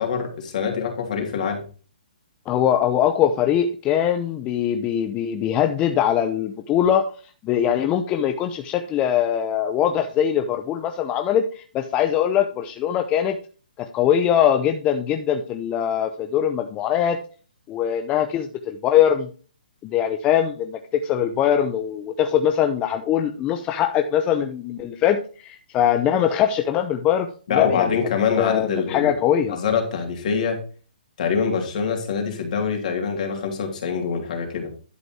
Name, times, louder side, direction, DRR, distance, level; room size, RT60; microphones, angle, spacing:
voice 1, 0.0-1.6 27.5-29.2 29.5-30.6 31.2-34.7, left 6 dB, 55° left, 3 dB, 3.2 m, -24 dB
voice 2, 2.5-7.1 7.4-13.4 13.9-17.2 17.7-19.3 19.8-27.9 28.4-29.6, left 9 dB, 20° left, 6 dB, 0.7 m, -22 dB
11.0 x 5.2 x 4.7 m, 0.37 s
hypercardioid pair, 145°, 5 cm